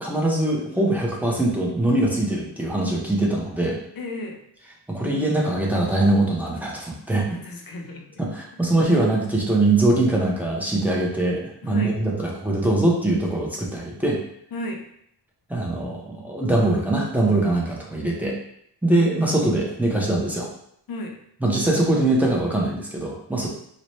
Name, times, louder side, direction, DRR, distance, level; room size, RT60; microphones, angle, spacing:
voice 1, 0.0-3.8 4.9-7.4 8.2-14.2 15.5-18.4 18.8-20.5 21.4-23.5, right 2 dB, 5° right, -3 dB, 0.5 m, -22 dB
voice 2, 4.0-4.4 7.1-8.3 8.8-9.0 11.6-11.9 14.5-14.8 20.9-21.1, left 1 dB, 55° left, 2 dB, 0.6 m, -34 dB
4.0 x 2.1 x 3.1 m, 0.70 s
wide cardioid pair, 180°, 41 cm